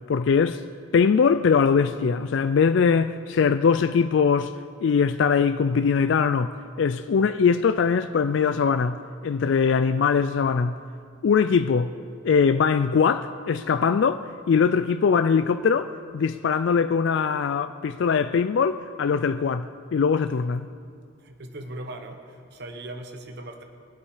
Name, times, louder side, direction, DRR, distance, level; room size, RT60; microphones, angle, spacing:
voice 1, 0.1-0.6 0.9-4.5 4.8-6.5 6.8-10.8 11.2-11.9 12.2-20.7, left 6 dB, 60° left, 0.3 m, -21 dB
voice 2, 21.2-23.6, right 1 dB, 55° right, 1.0 m, -39 dB
23.0 x 8.4 x 4.9 m
head